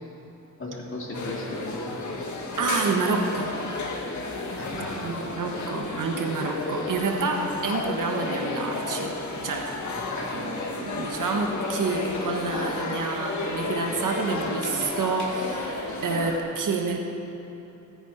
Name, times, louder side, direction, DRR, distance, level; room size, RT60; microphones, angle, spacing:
voice 1, 0.6-2.0 4.5-5.1 10.1-10.4, left 1 dB, 40° left, -3 dB, 3.1 m, -35 dB
sound 1, 1.1-16.4, left 3 dB, 65° left, 1.8 m, -32 dB
voice 2, 2.6-3.5 5.0-9.1 9.4-9.7 10.3-17.0, right 4 dB, 80° right, 2 dB, 1.5 m, -28 dB
19.5 x 9.0 x 4.4 m, 3.0 s
cardioid pair, 70°, 32 cm